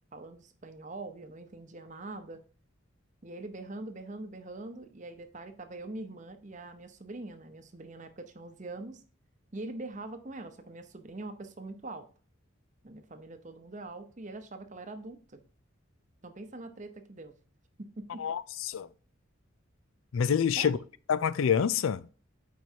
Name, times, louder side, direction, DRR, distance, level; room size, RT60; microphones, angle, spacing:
voice 1, 0.1-2.4 3.2-9.0 9.5-12.1 12.8-15.4 16.2-17.3 17.8-18.2 20.6-20.8, right 2 dB, 35° right, 0.8 m, -43 dB
voice 2, 18.2-18.9 20.1-20.8 21.1-22.1, left 7 dB, 70° left, 0.4 m, -27 dB
9.0 x 4.6 x 2.8 m
head